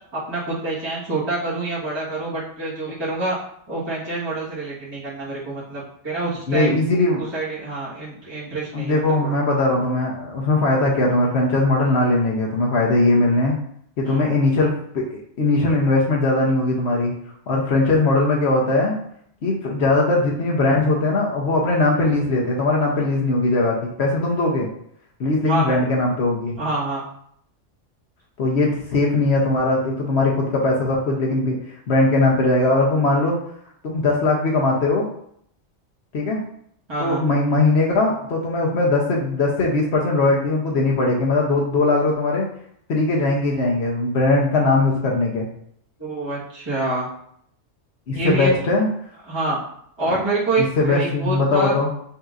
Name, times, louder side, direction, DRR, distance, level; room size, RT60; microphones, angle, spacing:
voice 1, 0.1-3.4 3.7-6.7 7.2-9.4 14.0-14.3 25.4-25.8 26.6-27.0 36.9-37.2 46.0-47.1 48.1-48.5 49.3-49.6 50.0-51.7, right 2 dB, 20° right, -8 dB, 1.3 m, -26 dB
voice 2, 6.5-7.2 8.7-13.6 14.0-17.1 17.5-18.9 19.4-24.7 25.2-26.6 28.4-31.6 31.9-33.3 33.8-35.0 36.1-36.4 37.0-42.5 42.9-45.5 48.1-48.9 50.1-50.2 50.6-51.9, left 2 dB, 65° left, -2 dB, 1.0 m, -20 dB
5.5 x 2.8 x 2.4 m, 0.68 s
omnidirectional pair, 1.3 m